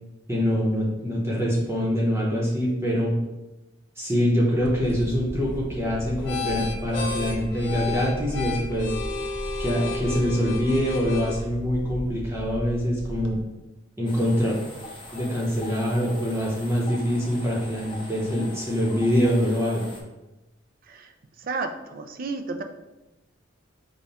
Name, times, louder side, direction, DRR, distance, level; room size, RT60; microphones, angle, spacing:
voice 1, 0.3-3.1 4.0-8.9 9.6-13.4 14.0-14.6 15.1-19.9, equal, 15° right, -5 dB, 0.8 m, -24 dB
sound 1, 4.6-13.4, left 2 dB, 60° left, 0.7 m, -33 dB
sound 2, 14.1-20.0, left 1 dB, 25° left, 0.9 m, -42 dB
voice 2, 21.4-22.6, right 3 dB, 50° right, 7 dB, 0.4 m, -32 dB
5.4 x 2.3 x 4.2 m, 1.0 s
head